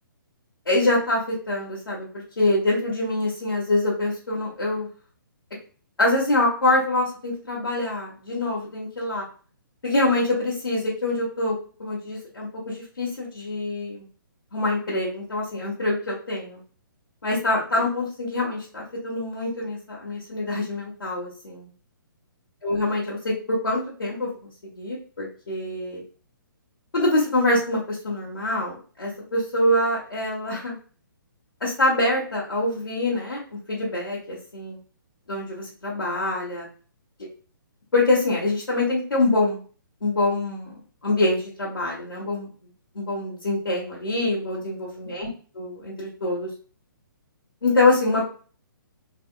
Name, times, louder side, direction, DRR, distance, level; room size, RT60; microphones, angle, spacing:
voice 1, 0.7-4.9 6.0-9.2 9.8-14.1 14.5-16.6 17.2-21.7 22.6-24.3 24.7-26.0 26.9-30.8 31.6-34.8 35.3-36.7 37.9-39.6 40.0-42.5 43.0-45.3 45.5-46.5 47.6-48.3, left 2 dB, 80° left, -7 dB, 1.7 m, -25 dB
3.5 x 3.4 x 2.5 m, 0.39 s
hypercardioid pair, 140°, 12 cm